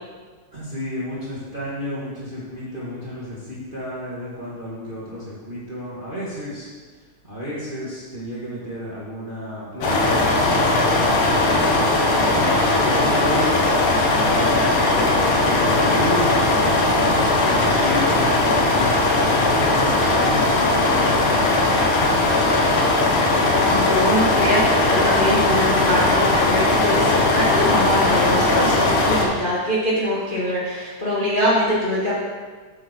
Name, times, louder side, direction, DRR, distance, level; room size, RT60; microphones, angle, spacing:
voice 1, 0.5-6.7 7.3-11.2 12.3-13.7 14.3-16.8 17.4-19.2 19.6-21.7, equal, 25° right, -7 dB, 1.3 m, -32 dB
sound 1, 9.8-29.2, left 2 dB, 80° left, 2.7 m, -18 dB
voice 2, 23.6-32.1, left 1 dB, 35° left, -8 dB, 0.8 m, -23 dB
7.6 x 7.4 x 4.5 m, 1.4 s
omnidirectional pair, 3.6 m